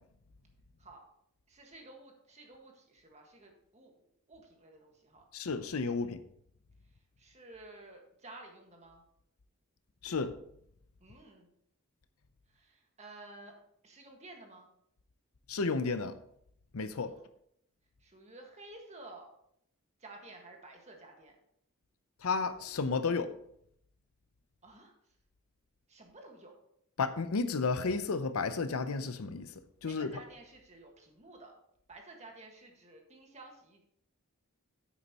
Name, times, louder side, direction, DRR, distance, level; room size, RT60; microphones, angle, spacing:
voice 1, 1.5-4.0 4.3-5.3 7.2-9.0 11.0-11.5 12.5-13.5 13.8-14.7 17.1-17.2 18.0-19.3 20.0-21.4 24.6-24.9 25.9-26.5 29.8-31.5 31.9-33.8, right 2 dB, 30° right, 1.7 m, -52 dB
voice 2, 5.3-6.2 10.0-10.3 15.5-16.2 16.7-17.1 22.2-23.3 27.0-29.5 29.8-30.2, left 4 dB, 75° left, 0.7 m, -32 dB
9.5 x 8.5 x 3.0 m
head